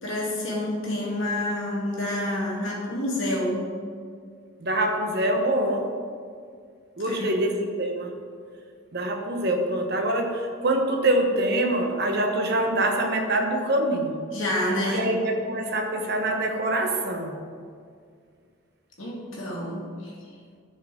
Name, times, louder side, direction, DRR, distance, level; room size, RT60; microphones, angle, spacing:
voice 1, 0.0-3.7 7.0-7.5 14.3-15.1 19.0-20.2, left 1 dB, 75° left, -4 dB, 2.4 m, -28 dB
voice 2, 4.6-5.9 7.0-8.1 8.9-14.2 14.8-17.4, right 1 dB, 55° right, 3 dB, 1.1 m, -25 dB
14.0 x 5.6 x 3.8 m, 2.2 s
head